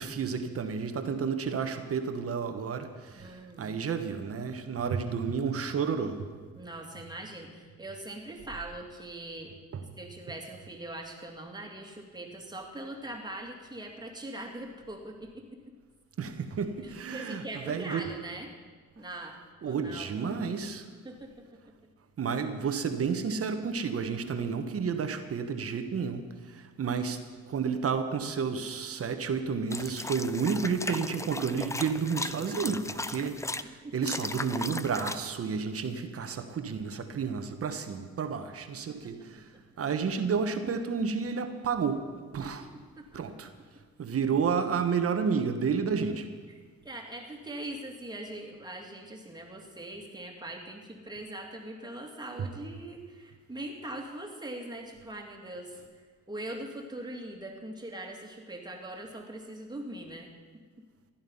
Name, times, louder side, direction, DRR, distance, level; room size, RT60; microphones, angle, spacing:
voice 1, 0.0-6.3 9.7-9.8 16.2-18.0 19.6-20.9 22.2-27.2 27.5-39.5 39.8-42.1 42.3-42.7 43.1-43.5 44.0-46.3 52.4-52.5, right 6 dB, 50° right, 8 dB, 1.3 m, -31 dB
voice 2, 3.1-3.7 6.5-9.5 10.0-15.7 16.8-18.5 19.0-20.3 20.9-21.9 33.8-33.9 38.9-39.6 42.4-42.5 43.0-43.1 46.5-56.0 56.3-60.6, right 1 dB, 15° right, 1 dB, 2.4 m, -42 dB
sound 1, 29.7-33.6 34.0-35.2, left 2 dB, 10° left, 0.5 m, -36 dB
16.0 x 11.5 x 5.5 m, 1.6 s
cardioid pair, 90°, 30 cm